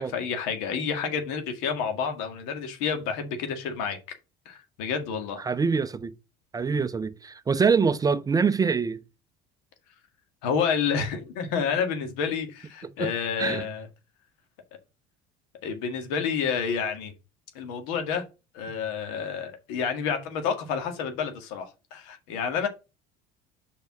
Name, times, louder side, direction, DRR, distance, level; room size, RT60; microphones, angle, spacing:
voice 1, 0.0-4.0 4.5-5.4 10.4-13.9 15.6-17.1 17.5-18.2 18.5-22.7, left 6 dB, 80° left, 1.9 m, -29 dB
voice 2, 5.4-6.1 6.5-9.0 13.0-13.1 13.4-13.7, right 5 dB, 20° right, 0.5 m, -24 dB
5.2 x 4.7 x 5.8 m
supercardioid pair, 115°, 19 cm